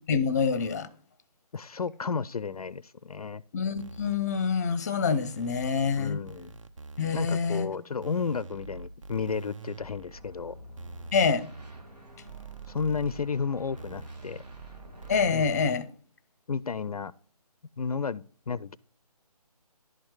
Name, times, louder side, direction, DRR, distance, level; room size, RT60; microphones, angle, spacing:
voice 1, 0.1-0.9 3.5-6.2 7.0-7.7 11.1-11.5 15.1-15.8, left 5 dB, 25° left, 0.6 m, -26 dB
voice 2, 1.5-3.4 6.0-6.5 7.1-10.6 12.7-14.4 15.3-15.4 16.5-17.1 17.8-18.8, left 5 dB, 65° left, 0.4 m, -32 dB
sound 1, 3.8-4.2 5.0-6.0 6.3-7.2 8.0-10.2 10.8-11.8 12.3-13.2 13.8-15.8, right 4 dB, 55° right, 0.8 m, -44 dB
sound 2, 10.1-15.7, left 1 dB, 90° right, 2.1 m, -48 dB
11.0 x 4.4 x 4.7 m
figure-of-eight pair, 150°, 20 cm